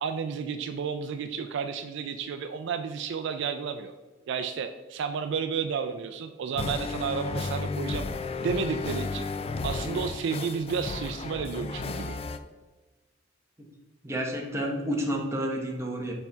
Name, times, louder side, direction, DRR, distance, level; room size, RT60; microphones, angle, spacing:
voice 1, 0.0-3.9 4.3-8.1 8.4-9.3 9.6-12.2, right 6 dB, 65° right, 8 dB, 0.3 m, -32 dB
sound 1, 6.6-12.4, left 3 dB, 30° left, 0.3 m, -33 dB
voice 2, 14.0-16.1, equal, 15° right, -1 dB, 1.0 m, -30 dB
7.0 x 4.3 x 3.4 m, 1.2 s
head